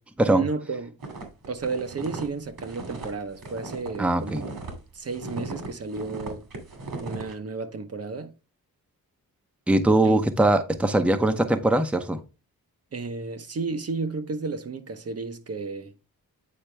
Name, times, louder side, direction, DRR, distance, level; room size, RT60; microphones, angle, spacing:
voice 1, 0.3-0.9 1.5-4.6 4.9-6.4 7.0-8.3 10.0-10.2 12.9-15.9, right 4 dB, 40° right, 0.8 m, -33 dB
sound 1, 1.0-4.7 5.1-7.3, right 3 dB, 70° right, 2.4 m, -37 dB
voice 2, 4.0-4.4 9.7-12.2, right 2 dB, 5° right, 0.7 m, -21 dB
8.7 x 4.3 x 3.3 m
cardioid pair, 95°, 36 cm